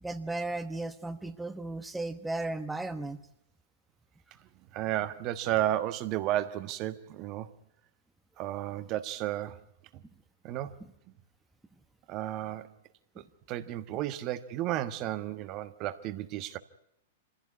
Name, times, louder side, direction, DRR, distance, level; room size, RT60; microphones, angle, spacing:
voice 1, 0.0-3.2 10.8-10.9 13.2-13.3, right 2 dB, 5° right, 1.2 m, -35 dB
voice 2, 4.7-7.5 8.4-9.6 9.9-10.0 10.4-10.8 12.1-12.7 13.2-16.6, right 13 dB, 40° right, 1.3 m, -33 dB
25.5 x 16.0 x 9.6 m
hypercardioid pair, 110°, 0 cm